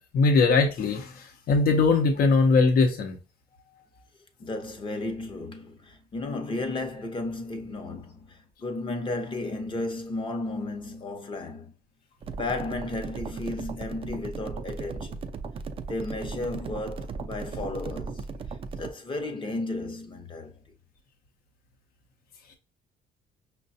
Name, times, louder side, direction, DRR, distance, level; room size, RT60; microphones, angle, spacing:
voice 1, 0.1-3.2, left 4 dB, 60° left, 0.8 m, -21 dB
voice 2, 4.4-11.7 12.4-15.2 15.9-18.3 18.8-20.5, left 2 dB, 30° left, 0.8 m, -34 dB
sound 1, 12.2-18.9, right 4 dB, 35° right, 0.4 m, -37 dB
5.5 x 2.2 x 2.7 m
cardioid pair, 110°, 17 cm